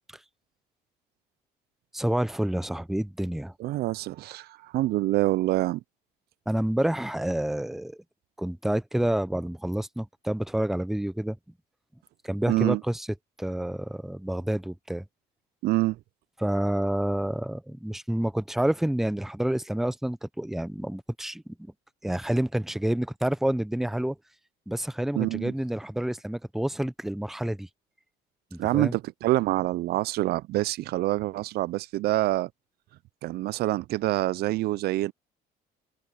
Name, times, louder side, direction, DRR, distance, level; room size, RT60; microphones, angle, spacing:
voice 1, 1.9-3.5 6.5-8.0 8.4-11.4 12.2-13.1 13.4-15.0 16.4-21.5 22.0-24.2 24.7-27.7 28.5-28.9, right 1 dB, ahead, 0.7 m, -28 dB
voice 2, 3.6-5.8 12.5-12.8 15.6-16.0 25.2-25.5 28.6-32.5 33.2-35.1, right 17 dB, 70° right, 0.5 m, -26 dB
cardioid pair, 110°, 17 cm